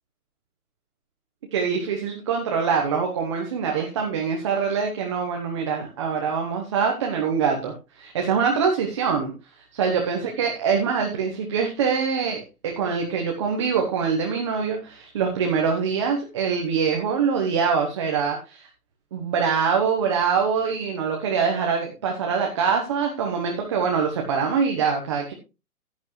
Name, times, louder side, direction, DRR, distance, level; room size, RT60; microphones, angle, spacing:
voice 1, 1.5-9.3 9.7-18.6 19.1-25.3, right 6 dB, 20° right, 1 dB, 1.0 m, -24 dB
11.0 x 10.5 x 3.1 m, 0.29 s
hypercardioid pair, 165°, 45 cm